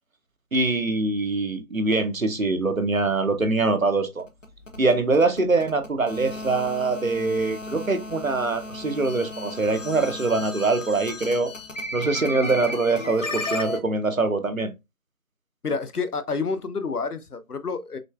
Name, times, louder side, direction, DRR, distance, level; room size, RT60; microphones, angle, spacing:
voice 1, 0.5-4.2 4.8-11.5 11.9-14.7, right 3 dB, 65° right, 0.9 m, -23 dB
sound 1, 4.2-13.8, left 2 dB, 55° left, 0.8 m, -34 dB
voice 2, 15.6-18.0, left 4 dB, 85° left, 0.8 m, -29 dB
6.2 x 2.3 x 2.2 m
figure-of-eight pair, 180°, 45 cm